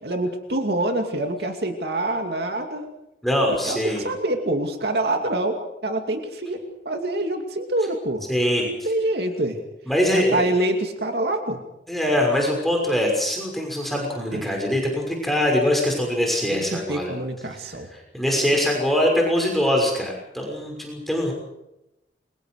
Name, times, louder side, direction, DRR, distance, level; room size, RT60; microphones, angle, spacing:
voice 1, 0.0-2.9 3.6-8.2 8.6-9.6 10.1-11.6 14.3-14.5 16.5-17.9, right 1 dB, 65° right, 4 dB, 2.6 m, -26 dB
voice 2, 3.2-4.0 8.3-8.7 9.9-10.5 11.9-17.2 17.9-21.3, left 1 dB, ahead, 0 dB, 6.0 m, -23 dB
29.0 x 24.5 x 4.9 m, 0.87 s
head